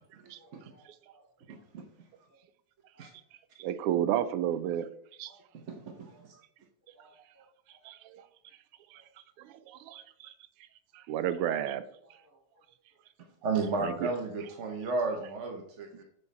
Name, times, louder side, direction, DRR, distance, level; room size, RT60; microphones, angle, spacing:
voice 1, 0.4-1.2 2.3-2.4 2.9-3.1 5.3-5.4 6.1-6.3 6.9-7.4 8.9-9.0 12.2-12.6 14.4-14.5, right 2 dB, 10° right, -4 dB, 2.4 m, -62 dB
voice 2, 1.5-1.8 3.0-3.1 6.0-6.1 13.4-16.0, right 3 dB, 55° right, 2 dB, 0.8 m, -33 dB
voice 3, 3.6-4.9 5.2-5.3 7.8-8.3 8.9-9.0 9.4-10.3 10.9-11.8 13.8-14.1, right 10 dB, 90° right, 12 dB, 1.5 m, -32 dB
8.3 x 5.4 x 4.1 m, 0.73 s
omnidirectional pair, 2.4 m